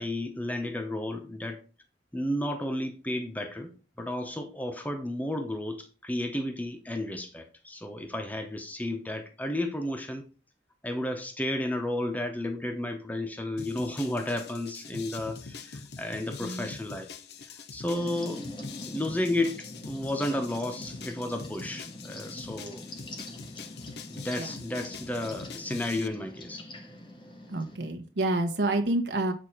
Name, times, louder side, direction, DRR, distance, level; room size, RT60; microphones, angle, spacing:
voice 1, 0.0-1.6 2.1-3.7 4.0-10.2 10.8-17.1 17.4-18.5 18.9-22.8 24.1-26.6, left 1 dB, 10° left, 0.7 m, -32 dB
sound 1, 13.6-26.1, left 5 dB, 65° left, 0.7 m, -44 dB
sound 2, 17.9-27.8, left 1 dB, 25° left, 1.3 m, -44 dB
voice 2, 24.4-24.9 27.5-29.3, right 2 dB, 75° right, 1.0 m, -29 dB
8.2 x 4.4 x 4.4 m
head